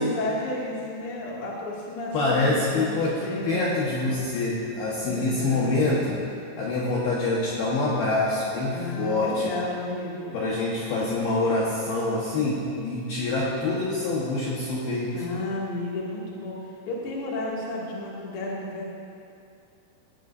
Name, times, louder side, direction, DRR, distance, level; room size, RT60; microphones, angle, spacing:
voice 1, 0.0-3.8 4.9-6.0 8.7-10.4 15.1-18.9, left 2 dB, 35° left, -5 dB, 2.4 m, -33 dB
voice 2, 2.1-6.2 6.6-9.5 10.3-15.1, left 2 dB, 60° left, -6 dB, 2.8 m, -26 dB
18.0 x 17.0 x 2.8 m, 2.6 s
omnidirectional pair, 5.9 m